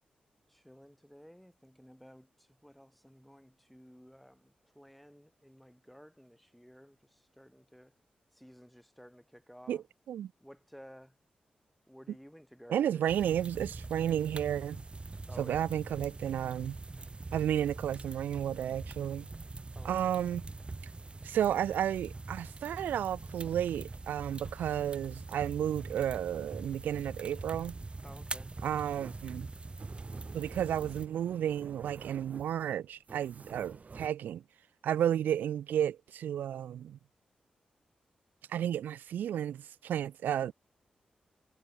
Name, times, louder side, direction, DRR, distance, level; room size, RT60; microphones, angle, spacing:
voice 1, 0.5-7.9 8.3-9.8 10.4-11.2 11.9-13.3 15.3-15.7 19.7-20.1 28.0-28.5, equal, ahead, 4.5 m, -55 dB
voice 2, 9.7-10.3 12.7-14.8 15.4-16.8 17.3-19.3 19.8-20.4 21.2-27.7 28.6-29.5 30.3-34.4 34.8-37.0 38.5-40.5, right 10 dB, 85° right, 0.6 m, -32 dB
sound 1, 13.1-31.1, right 3 dB, 35° right, 1.6 m, -43 dB
sound 2, 28.9-34.1, right 4 dB, 55° right, 5.1 m, -50 dB
supercardioid pair, 40°, 3 cm